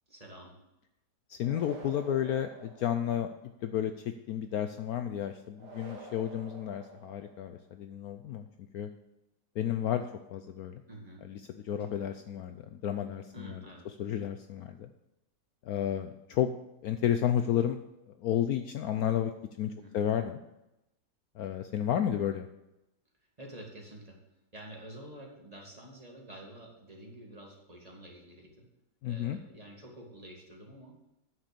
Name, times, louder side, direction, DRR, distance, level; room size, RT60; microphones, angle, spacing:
voice 1, 0.1-0.5 10.9-11.2 11.8-11.9 13.3-13.8 19.7-19.9 23.4-24.2 24.5-28.7 29.0-30.9, right 1 dB, 20° right, -1 dB, 2.1 m, -48 dB
voice 2, 1.3-3.3 3.6-3.9 4.3-8.4 8.7-8.9 9.6-10.8 11.2-13.6 14.0-14.9 15.6-16.5 16.8-17.8 18.1-19.3 19.6-20.4 21.4-22.5 29.0-29.4, left 10 dB, 70° left, 8 dB, 1.0 m, -32 dB
sound 1, 1.4-3.5 5.6-7.6, right 3 dB, 70° right, 2.2 m, -50 dB
9.5 x 6.2 x 6.7 m, 0.90 s
omnidirectional pair, 1.9 m